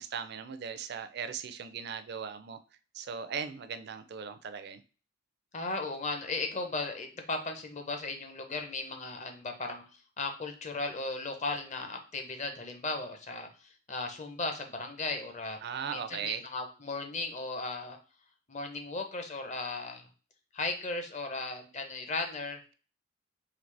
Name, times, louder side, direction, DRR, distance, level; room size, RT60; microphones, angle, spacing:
voice 1, 0.0-2.6 2.9-4.8 15.6-16.4, right 6 dB, 55° right, 11 dB, 0.4 m, -38 dB
voice 2, 5.5-9.8 10.2-15.6 15.9-18.0 18.5-20.1 20.5-22.6, left 3 dB, 35° left, 5 dB, 0.7 m, -36 dB
3.9 x 3.2 x 3.2 m, 0.36 s
head